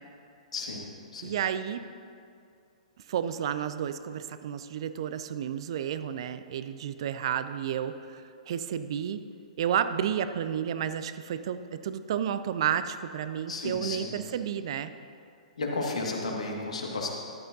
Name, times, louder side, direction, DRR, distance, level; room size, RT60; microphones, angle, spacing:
voice 1, 0.5-1.3 13.5-14.3 15.6-17.1, left 3 dB, 65° left, 0 dB, 1.7 m, -33 dB
voice 2, 1.2-1.8 3.1-9.2 9.6-14.9, right 9 dB, 45° right, 11 dB, 0.4 m, -31 dB
14.0 x 11.0 x 2.6 m, 2.4 s
figure-of-eight pair, 115°, 4 cm